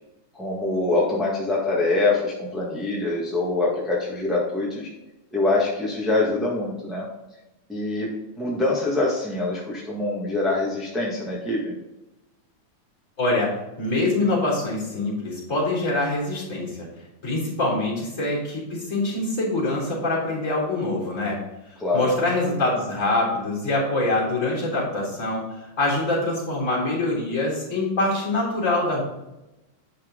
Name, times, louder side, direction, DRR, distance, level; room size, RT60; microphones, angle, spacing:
voice 1, 0.3-4.9 5.3-7.1 7.7-8.1 8.4-11.7 21.8-22.0, left 2 dB, ahead, -6 dB, 1.0 m, -24 dB
voice 2, 13.2-16.9 17.2-21.4 21.9-29.0, left 2 dB, 25° left, -5 dB, 3.6 m, -24 dB
9.2 x 5.8 x 3.8 m, 0.96 s
omnidirectional pair, 3.3 m